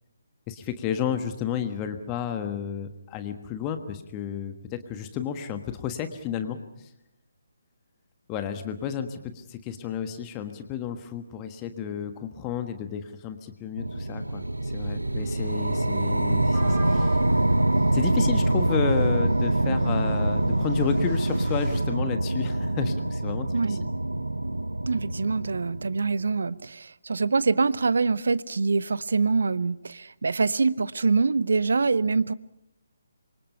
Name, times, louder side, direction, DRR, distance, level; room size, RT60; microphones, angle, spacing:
voice 1, 0.5-6.9 8.3-17.2 17.9-23.9, left 8 dB, 20° left, 8 dB, 1.4 m, -32 dB
sound 1, 13.8-26.3, right 1 dB, 75° right, 1.0 m, -25 dB
sound 2, 16.5-21.8, right 2 dB, 15° right, 6.5 m, -42 dB
voice 2, 23.5-23.8 24.9-32.3, right 4 dB, 55° right, 19 dB, 0.8 m, -25 dB
27.0 x 24.5 x 5.7 m, 0.82 s
figure-of-eight pair, 140°, 0 cm